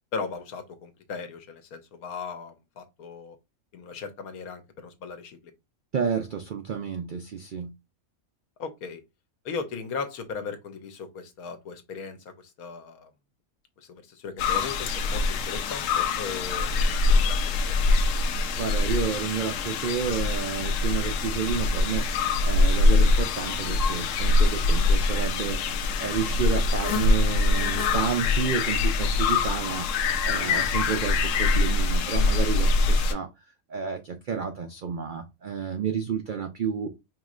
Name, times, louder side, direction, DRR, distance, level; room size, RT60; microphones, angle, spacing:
voice 1, 0.1-3.4 3.7-5.5 8.6-9.0 9.4-13.1 13.8-17.8, left 5 dB, 90° left, 1.3 m, -37 dB
voice 2, 5.9-7.7 18.5-25.6 26.0-29.9 30.2-33.3 33.7-36.9, right 7 dB, 85° right, 0.4 m, -30 dB
sound 1, 14.4-33.1, left 3 dB, 70° left, 0.9 m, -24 dB
4.9 x 3.1 x 2.4 m
omnidirectional pair, 1.5 m